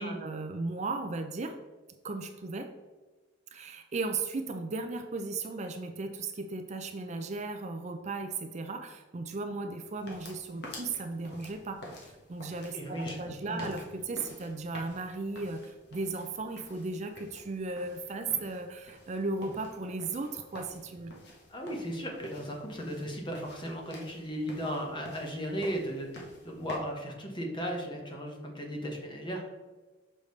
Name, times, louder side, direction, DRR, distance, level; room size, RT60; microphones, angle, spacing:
voice 1, 0.0-1.5 2.0-2.7 3.5-21.1, right 3 dB, 40° right, 6 dB, 0.4 m, -36 dB
sound 1, 9.9-26.8, left 1 dB, 60° left, 1.4 m, -49 dB
voice 2, 12.7-13.6 21.5-29.5, equal, 25° left, 0 dB, 1.2 m, -36 dB
6.4 x 5.4 x 3.2 m, 1.2 s
head